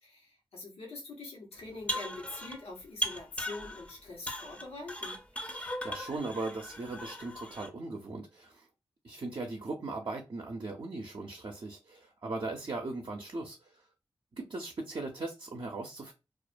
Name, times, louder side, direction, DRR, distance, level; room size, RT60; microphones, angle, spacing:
voice 1, 0.0-5.2, left 2 dB, 90° left, 1.0 m, -44 dB
sound 1, 1.7-2.6 3.0-3.9 4.3-7.7, left 1 dB, 15° left, 0.5 m, -38 dB
voice 2, 5.4-8.7 9.0-13.8 14.3-16.1, right 3 dB, 55° right, 0.5 m, -39 dB
2.4 x 2.1 x 2.4 m
cardioid pair, 60°, 10 cm